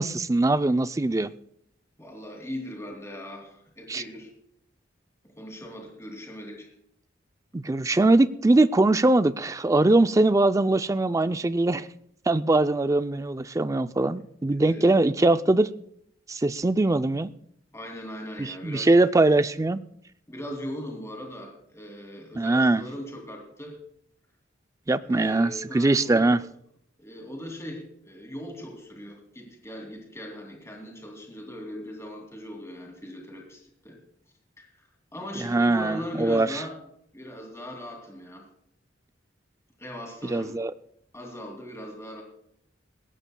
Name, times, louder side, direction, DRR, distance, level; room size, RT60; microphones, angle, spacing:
voice 1, 0.0-1.3 3.9-4.0 7.5-11.9 12.3-15.7 16.3-17.3 18.4-19.8 22.4-22.8 24.9-26.4 35.4-36.6 40.2-40.7, right 2 dB, 15° right, 0.4 m, -22 dB
voice 2, 2.0-4.3 5.4-6.7 14.6-15.0 17.7-18.9 20.3-23.8 25.0-26.4 27.0-34.0 34.6-34.7 35.1-36.8 37.1-38.5 39.8-40.6 41.1-42.2, equal, 15° left, 2.7 m, -39 dB
21.0 x 17.0 x 2.3 m
head